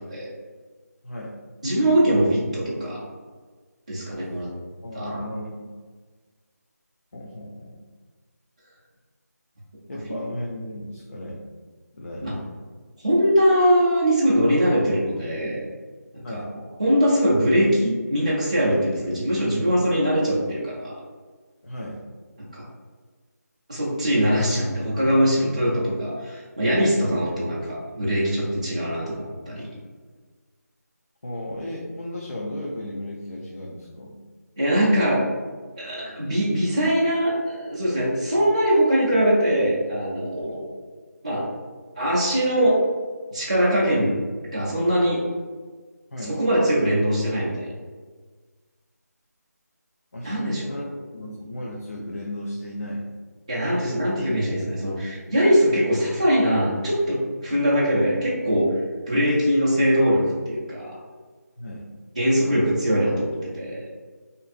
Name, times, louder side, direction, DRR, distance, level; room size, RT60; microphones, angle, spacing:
voice 1, 1.0-1.4 4.8-5.7 7.1-7.8 9.9-11.4 11.9-12.5 16.2-16.5 21.6-22.0 31.2-34.2 46.1-46.4 50.1-53.0 61.6-61.9, left 1 dB, 50° left, -4 dB, 0.4 m, -35 dB
voice 2, 1.6-3.0 3.9-4.5 4.9-5.2 12.2-12.3 13.0-15.6 16.1-16.4 16.8-20.9 22.4-22.6 23.7-29.8 34.6-35.2 35.8-40.7 41.2-41.4 42.0-42.8 43.3-45.2 46.3-47.7 50.2-50.7 53.5-58.7 59.1-60.9 62.2-63.8, equal, 25° right, -8 dB, 0.3 m, -22 dB
2.5 x 2.3 x 2.5 m, 1.4 s
figure-of-eight pair, 175°, 9 cm